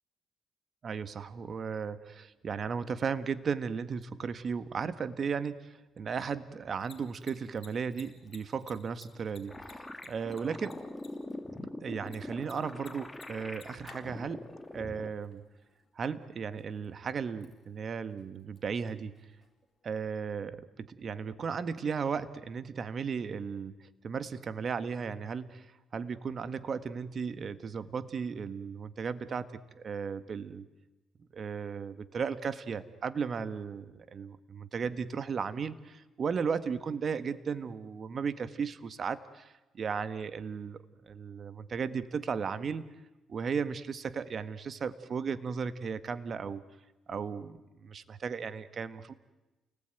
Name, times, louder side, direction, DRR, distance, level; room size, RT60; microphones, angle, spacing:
voice 1, 0.8-10.8 11.8-15.4 15.9-19.2 19.8-30.7 31.3-40.8 41.0-42.8 43.3-46.6 47.1-49.1, right 6 dB, 50° right, 13 dB, 1.5 m, -35 dB
Mechanisms, 6.6-20.2, left 5 dB, 40° left, 4.0 m, -61 dB
sound 1, 9.5-15.1, left 1 dB, 10° left, 2.0 m, -43 dB
29.0 x 19.5 x 9.3 m, 1.0 s
cardioid pair, 90°, 0 cm